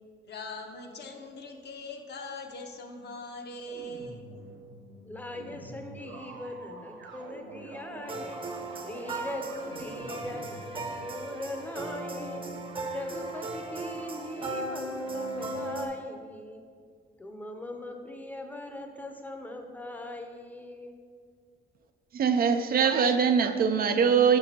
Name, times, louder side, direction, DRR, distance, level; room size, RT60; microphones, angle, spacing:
voice 1, 0.2-4.3, left 2 dB, 55° left, 3 dB, 0.8 m, -41 dB
sound 1, 3.6-15.7, right 3 dB, 75° right, 0.7 m, -47 dB
voice 2, 5.0-8.5 8.8-12.5 12.9-16.6 17.2-20.9, left 1 dB, 10° left, 4 dB, 0.6 m, -40 dB
sound 2, 8.1-15.9, right 2 dB, 25° right, 0.7 m, -37 dB
voice 3, 22.1-24.4, right 6 dB, 50° right, 7 dB, 0.4 m, -22 dB
6.1 x 6.1 x 2.8 m, 2.1 s
cardioid pair, 90°, 20 cm